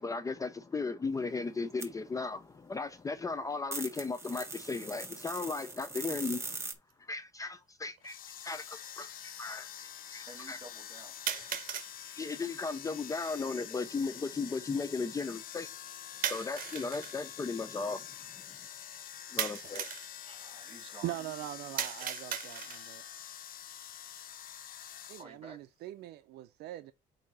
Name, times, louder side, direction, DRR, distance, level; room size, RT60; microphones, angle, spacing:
voice 1, 0.0-6.7 7.0-9.7 10.1-10.6 12.0-15.7 16.3-18.1 19.3-19.9, left 4 dB, 20° left, 0.5 m, -36 dB
sound 1, 1.8-1.9 3.7-6.7, right 3 dB, 15° right, 1.6 m, -41 dB
sound 2, 6.9-7.0 8.0-8.1 11.3-11.9 16.2-17.2 19.4-20.1 21.8-22.9, right 9 dB, 55° right, 1.1 m, -36 dB
sound 3, 8.0-25.2, left 10 dB, 55° left, 0.8 m, -47 dB
voice 2, 10.3-11.2 20.2-21.2 25.2-25.6, right 3 dB, 35° right, 4.0 m, -51 dB
voice 3, 21.0-22.6 22.9-23.0 25.1-26.9, right 15 dB, 75° right, 0.5 m, -41 dB
8.4 x 2.8 x 6.1 m
cardioid pair, 110°, 17 cm